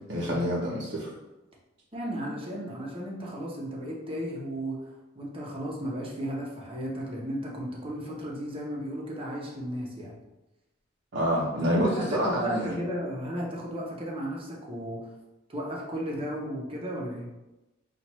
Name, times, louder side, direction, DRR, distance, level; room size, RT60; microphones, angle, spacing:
voice 1, 0.1-1.1 11.1-12.8, equal, 65° right, -7 dB, 0.9 m, -27 dB
voice 2, 1.9-10.1 11.8-15.0 15.5-17.3, equal, 30° right, -3 dB, 0.9 m, -34 dB
5.7 x 2.5 x 3.0 m, 1.0 s
head